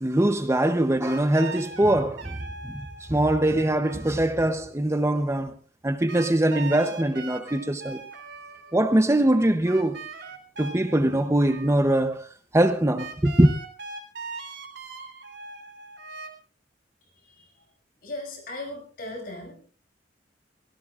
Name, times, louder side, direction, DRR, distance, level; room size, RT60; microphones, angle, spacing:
voice 1, 0.0-2.4 2.6-2.8 3.1-5.5 5.8-8.0 8.7-10.0 10.6-12.3 12.5-13.5, right 1 dB, 15° right, 0.7 m, -22 dB
sound 1, 1.0-4.3 6.1-8.8 9.7-11.8 12.1-12.2 13.0-16.3, right 4 dB, 75° right, 3.5 m, -40 dB
voice 2, 18.0-19.5, left 2 dB, 55° left, 6.6 m, -37 dB
24.5 x 17.5 x 2.4 m
head